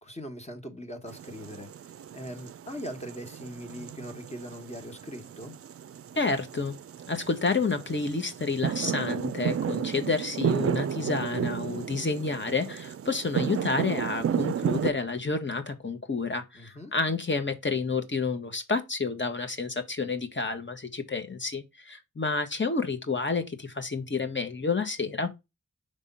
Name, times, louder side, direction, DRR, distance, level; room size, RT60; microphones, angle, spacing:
voice 1, 0.0-1.7 2.1-5.5 16.5-16.9, equal, 20° left, 1.5 m, -40 dB
sound 1, 1.1-14.9, right 9 dB, 50° right, 0.4 m, -33 dB
voice 2, 6.2-6.8 7.1-25.3, left 4 dB, 35° left, 1.4 m, -29 dB
4.9 x 3.6 x 5.5 m
cardioid pair, 40°, 31 cm